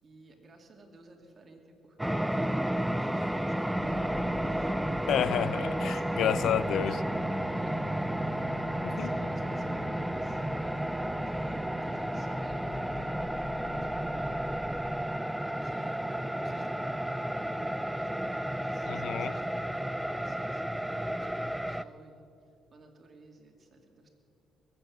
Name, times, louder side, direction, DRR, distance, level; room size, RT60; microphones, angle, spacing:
voice 1, 0.0-2.6 3.0-5.5 5.9-6.3 7.4-8.7 9.0-14.9 15.4-17.4 17.9-22.3 22.7-24.1, right 2 dB, 40° right, 1 dB, 2.5 m, -54 dB
sound 1, 2.0-21.8, right 1 dB, 5° right, 0.4 m, -32 dB
sound 2, 3.8-15.0, equal, 10° left, 2.7 m, -42 dB
voice 2, 5.1-7.0 8.8-9.1 18.9-19.4, left 10 dB, 75° left, 17 dB, 0.4 m, -30 dB
21.0 x 7.9 x 7.7 m, 2.5 s
cardioid pair, 90°, 0 cm